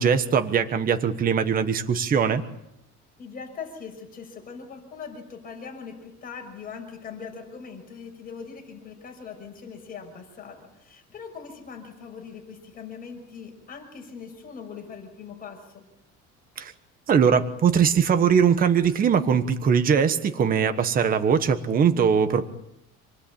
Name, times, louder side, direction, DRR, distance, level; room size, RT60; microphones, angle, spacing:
voice 1, 0.0-2.4 16.6-16.7 17.1-22.5, right 7 dB, 25° right, 9 dB, 1.3 m, -21 dB
voice 2, 3.2-15.8, left 6 dB, 25° left, 2 dB, 6.1 m, -41 dB
28.0 x 20.0 x 8.7 m, 0.84 s
cardioid pair, 165°, 33 cm